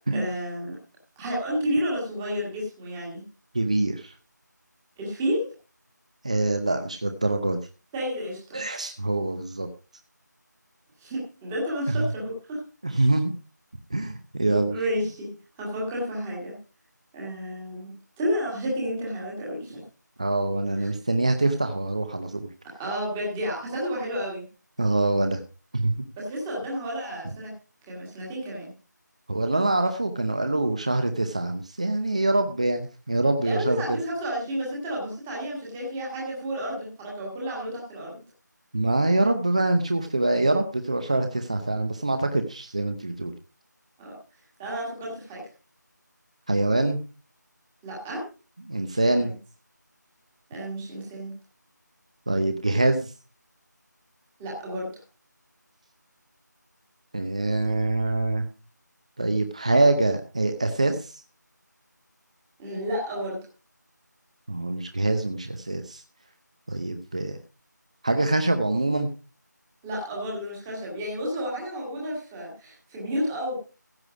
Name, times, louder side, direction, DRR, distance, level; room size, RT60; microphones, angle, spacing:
voice 1, 0.1-0.8 1.2-3.2 5.0-5.5 7.9-8.6 11.0-12.6 14.7-16.6 17.1-19.8 20.8-20.9 22.8-24.4 26.2-27.5 27.9-28.7 33.4-38.2 44.0-44.1 44.6-45.4 47.8-48.2 48.9-49.3 50.5-51.4 54.4-54.9 62.6-63.4 69.8-73.6, equal, 5° right, -4 dB, 1.5 m, -31 dB
voice 2, 3.5-4.1 6.2-7.6 8.5-9.7 11.9-12.1 12.8-13.3 13.9-14.8 20.2-22.5 24.8-25.4 25.7-26.1 29.3-34.0 38.7-43.3 46.5-47.0 48.7-49.3 52.3-53.1 57.1-58.5 59.2-61.2 64.5-66.0 66.7-67.4 68.0-69.1, right 2 dB, 20° right, 7 dB, 0.7 m, -24 dB
15.5 x 8.1 x 4.8 m, 0.33 s
figure-of-eight pair, 175°, 10 cm